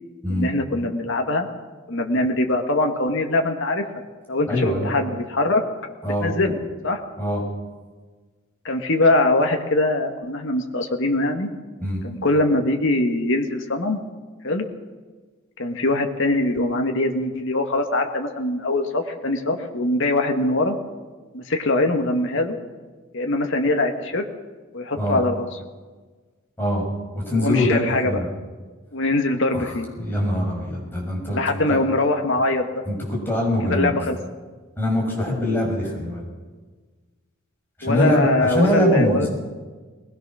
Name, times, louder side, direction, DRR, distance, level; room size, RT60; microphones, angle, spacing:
voice 1, 0.3-1.5 1.9-3.8 4.3-5.6 6.2-6.6 6.8-7.0 8.6-11.5 12.0-14.0 14.4-14.7 15.6-20.8 21.3-22.6 23.1-24.2 24.7-25.5 27.3-28.2 28.9-29.9 31.3-32.8 33.6-34.2 37.8-39.3, left 2 dB, 60° left, 4 dB, 1.7 m, -22 dB
voice 2, 4.5-4.9 6.0-6.3 7.2-7.4 11.8-12.0 25.0-25.2 26.6-26.9 27.1-28.3 29.5-29.6 30.0-31.4 31.7-31.8 32.9-34.0 34.8-36.2 37.8-39.3, left 1 dB, 10° left, -3 dB, 6.7 m, -23 dB
21.0 x 20.5 x 6.3 m, 1.4 s
head